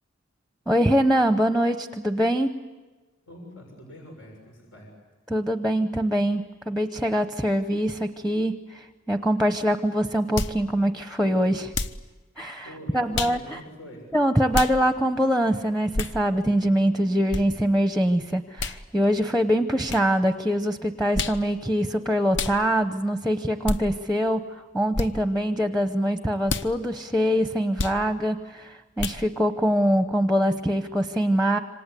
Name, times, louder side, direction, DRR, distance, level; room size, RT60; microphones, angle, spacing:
voice 1, 0.7-2.5 5.3-11.7 12.4-13.6 14.1-24.4 24.7-31.6, equal, ahead, 8 dB, 0.8 m, -23 dB
voice 2, 3.3-4.9 12.6-14.0, equal, 80° left, 1 dB, 6.8 m, -44 dB
sound 1, 10.4-10.6 11.7-12.0 13.1-13.4 14.5-14.8 15.9-16.2 17.3-17.4 18.6-18.8 19.9-20.0 21.1-21.4 22.3-22.6 23.6-23.8 24.9-25.1 26.5-26.7 27.8-28.0 29.0-29.2, left 3 dB, 60° left, 0.9 m, -28 dB
27.0 x 26.0 x 8.3 m, 1.2 s
head